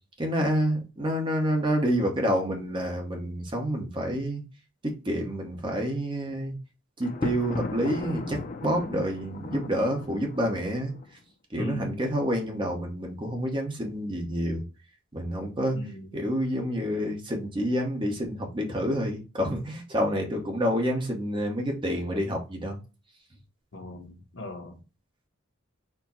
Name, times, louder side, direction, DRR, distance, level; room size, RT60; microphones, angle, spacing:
voice 1, 0.2-4.4 4.8-6.5 7.0-10.9 11.5-14.6 15.1-15.8 16.1-22.8, equal, 25° right, 0.9 m, -28 dB
Thunder, 7.0-11.1, left 3 dB, 40° left, 0.5 m, -37 dB
voice 2, 11.6-12.0 15.7-16.1 23.7-24.8, left 1 dB, 65° left, 1.1 m, -38 dB
4.5 x 2.2 x 4.3 m
head